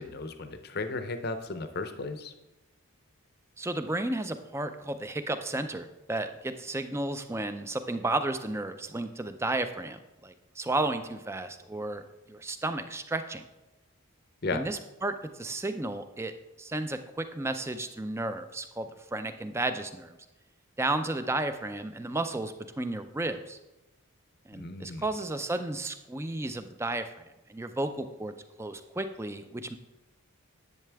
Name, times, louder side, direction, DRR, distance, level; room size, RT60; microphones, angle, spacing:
voice 1, 0.0-2.3 14.4-14.6 24.6-25.0, left 3 dB, 45° left, 8 dB, 0.6 m, -35 dB
voice 2, 3.6-13.4 14.5-16.3 16.6-20.2 20.8-23.6 24.5-29.8, right 2 dB, 10° right, 9 dB, 0.4 m, -33 dB
10.5 x 7.5 x 3.4 m, 1.0 s
head